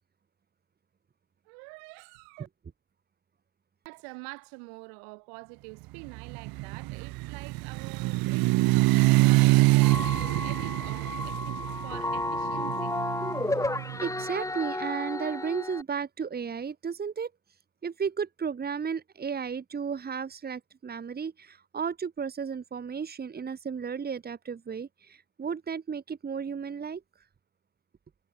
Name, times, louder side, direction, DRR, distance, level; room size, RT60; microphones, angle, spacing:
voice 1, 1.5-2.5 3.8-12.9, right 40 dB or more, 70° right, 4.2 m, -46 dB
sound 1, 6.1-14.1, right 20 dB, 55° right, 1.8 m, -25 dB
sound 2, 9.8-15.8, left 2 dB, 5° left, 4.0 m, -33 dB
voice 2, 14.0-17.3 17.8-27.0, right 6 dB, 20° right, 2.9 m, -34 dB
supercardioid pair, 115°, 42 cm